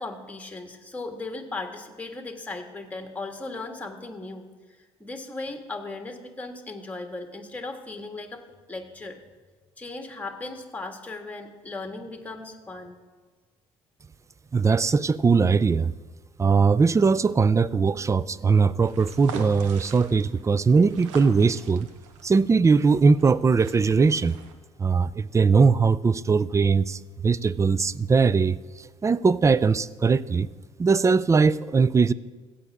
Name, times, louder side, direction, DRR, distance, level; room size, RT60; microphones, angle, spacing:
voice 1, 0.0-4.5 5.0-8.4 8.7-9.2 9.8-12.9, left 3 dB, 10° left, 4 dB, 1.8 m, -37 dB
voice 2, 14.5-15.9 16.4-21.9 22.2-24.4 24.8-30.5 30.8-32.1, right 5 dB, 20° right, 19 dB, 0.4 m, -20 dB
sound 1, 18.8-24.5, right 6 dB, 85° right, 1.0 m, -43 dB
15.0 x 8.5 x 3.6 m, 1.3 s
hypercardioid pair, 60°, 15 cm